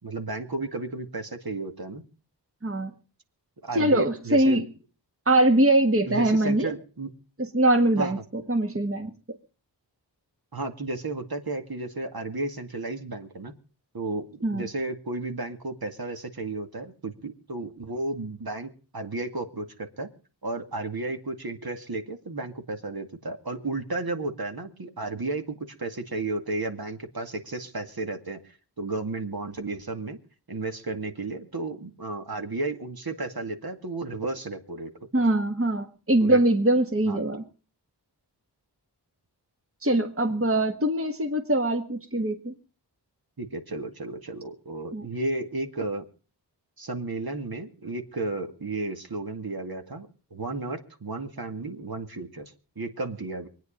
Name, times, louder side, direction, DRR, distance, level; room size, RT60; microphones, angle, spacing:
voice 1, 0.0-2.0 3.6-4.6 6.1-7.1 8.0-8.2 10.5-13.5 13.9-20.1 20.4-30.2 30.5-34.9 36.2-36.4 37.1-37.2 43.4-46.1 46.8-53.5, right 2 dB, 55° right, 5 dB, 2.3 m, -33 dB
voice 2, 3.7-4.7 5.2-6.7 7.4-9.1 14.4-14.7 35.1-37.4 39.8-42.5 44.9-45.0, right 1 dB, 30° right, 5 dB, 1.7 m, -22 dB
24.0 x 9.6 x 5.3 m, 0.38 s
wide cardioid pair, 50°, 42 cm